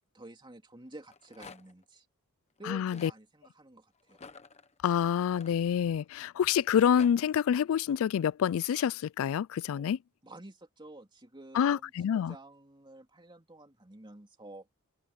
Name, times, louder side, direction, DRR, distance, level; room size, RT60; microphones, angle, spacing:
voice 1, 0.1-2.0 2.6-4.2 9.7-9.8 10.2-14.7, right 2 dB, 20° right, 2.8 m, -50 dB
Rattle, 0.9-1.8 2.6-3.2 4.1-6.1 6.6-7.1, left 5 dB, 30° left, 1.1 m, -51 dB
voice 2, 2.7-3.1 4.8-10.0 11.5-12.3, left 8 dB, 65° left, 0.3 m, -27 dB
head